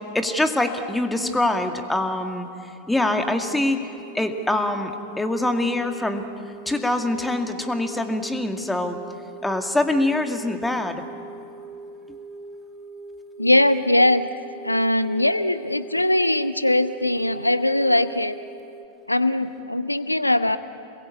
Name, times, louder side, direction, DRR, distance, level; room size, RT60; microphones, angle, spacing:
voice 1, 0.1-6.2 6.7-9.0 9.4-11.0, left 1 dB, 5° left, 6 dB, 2.2 m, -24 dB
sound 1, 2.9-18.9, right 3 dB, 15° right, 2.1 m, -42 dB
voice 2, 13.4-14.3 14.6-18.4 19.1-20.6, left 1 dB, 85° left, 13 dB, 0.8 m, -20 dB
27.5 x 21.5 x 8.6 m, 2.7 s
figure-of-eight pair, 90°, 0 cm